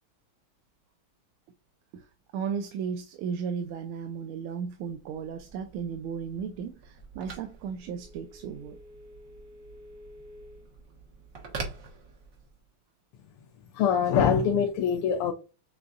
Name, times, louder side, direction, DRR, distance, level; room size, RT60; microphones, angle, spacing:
voice 1, 2.3-8.8, right 6 dB, 80° right, 1.4 m, -35 dB
Telephone, 4.8-12.7, right 3 dB, 50° right, 1.2 m, -45 dB
voice 2, 13.7-15.3, left 7 dB, 85° left, 1.5 m, -23 dB
6.7 x 2.4 x 2.5 m
omnidirectional pair, 2.4 m